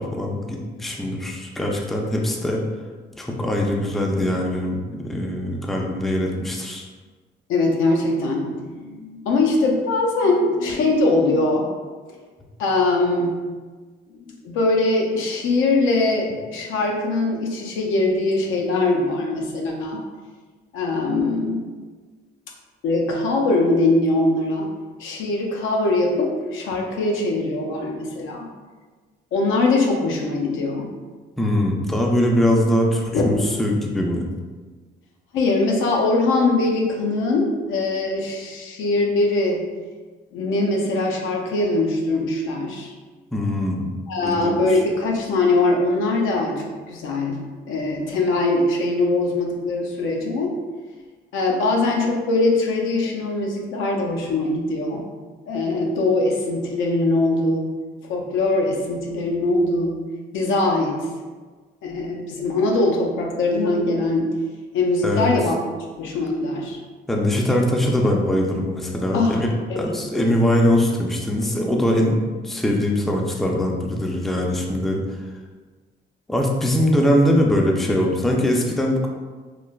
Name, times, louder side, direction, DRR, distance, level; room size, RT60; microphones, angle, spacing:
voice 1, 0.0-2.6 3.2-6.9 31.4-34.3 43.3-43.9 44.2-44.8 65.0-65.3 67.1-69.5 69.8-75.0 76.3-79.1, left 1 dB, ahead, 0 dB, 0.3 m, -22 dB
voice 2, 7.5-11.7 12.6-13.4 14.1-14.2 14.4-20.0 20.7-21.6 22.8-24.7 25.0-28.5 29.3-30.9 33.1-33.3 35.3-39.6 40.3-42.9 44.1-50.6 51.3-55.0 55.5-57.6 58.1-60.0 60.3-61.0 61.8-64.3 64.7-65.6 66.0-66.8 69.1-69.4 69.7-70.3, left 2 dB, 85° left, 0 dB, 0.5 m, -22 dB
3.1 x 2.0 x 2.3 m, 1.4 s
cardioid pair, 90°, 20 cm